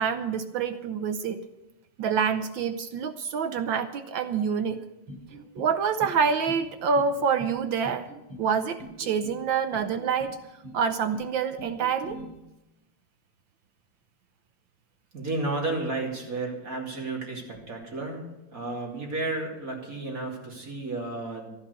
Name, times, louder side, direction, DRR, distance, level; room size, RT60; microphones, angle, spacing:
voice 1, 0.0-1.4 2.0-4.8 5.6-8.1 8.4-10.4 10.7-12.2, right 6 dB, 70° right, 10 dB, 1.4 m, -27 dB
sound 1, 5.1-5.7 6.0-6.6 6.9-7.6 7.8-8.5 8.8-9.4 9.7-10.3 10.6-11.3 11.6-12.2, equal, 85° right, 6.0 m, -43 dB
voice 2, 15.1-18.2 18.5-21.5, right 2 dB, 40° right, -1 dB, 3.3 m, -32 dB
12.5 x 11.5 x 6.8 m, 0.96 s
omnidirectional pair, 2.4 m